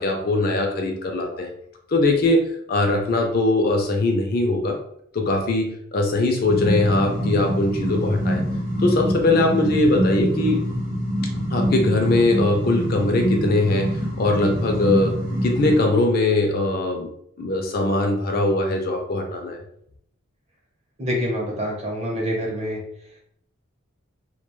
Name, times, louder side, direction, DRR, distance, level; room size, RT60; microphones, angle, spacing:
voice 1, 0.0-1.5 1.9-4.8 5.1-8.4 8.8-10.6 11.5-13.9 14.2-15.2 15.4-17.1 17.4-19.6, left 2 dB, 45° left, 2 dB, 0.4 m, -21 dB
sound 1, 6.4-15.8, equal, 70° right, 0.8 m, -25 dB
voice 2, 21.0-22.8, equal, 30° right, -2 dB, 0.7 m, -26 dB
2.2 x 2.2 x 3.0 m, 0.71 s
head